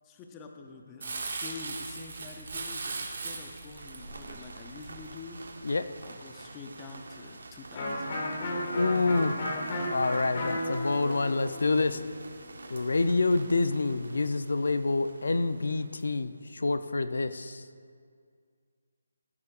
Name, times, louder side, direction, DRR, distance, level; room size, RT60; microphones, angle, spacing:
voice 1, 0.0-5.4 6.0-8.3, left 4 dB, 10° left, 3 dB, 0.6 m, -46 dB
Crumpling crinkling, 1.0-5.5 6.0-6.1, right 3 dB, 55° right, 1.8 m, -38 dB
sound 1, 3.8-16.4, right 3 dB, 75° right, 1.3 m, -48 dB
Electric guitar, 7.7-13.4, left 1 dB, 35° left, 1.7 m, -35 dB
voice 2, 8.7-9.4 9.9-12.0 12.7-17.6, left 3 dB, 70° left, 11 dB, 0.5 m, -27 dB
14.5 x 11.5 x 2.5 m, 2.1 s
hypercardioid pair, 170°, 0 cm